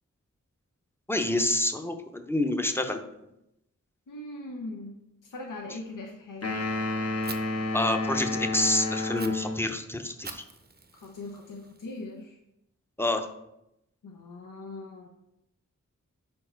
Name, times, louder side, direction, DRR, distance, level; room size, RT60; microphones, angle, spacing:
voice 1, 1.1-3.0 7.7-10.4 13.0-13.3, left 1 dB, 5° left, 6 dB, 0.6 m, -27 dB
voice 2, 4.1-6.5 10.9-12.4 14.0-15.1, left 2 dB, 75° left, 2 dB, 0.7 m, -40 dB
sound 1, 6.4-9.8, left 2 dB, 50° left, 0.9 m, -30 dB
Fire, 7.2-7.4 9.2-9.3 10.2-12.2, right 4 dB, 30° right, 0.6 m, -44 dB
5.2 x 4.4 x 4.4 m, 0.85 s
wide cardioid pair, 45°, 32 cm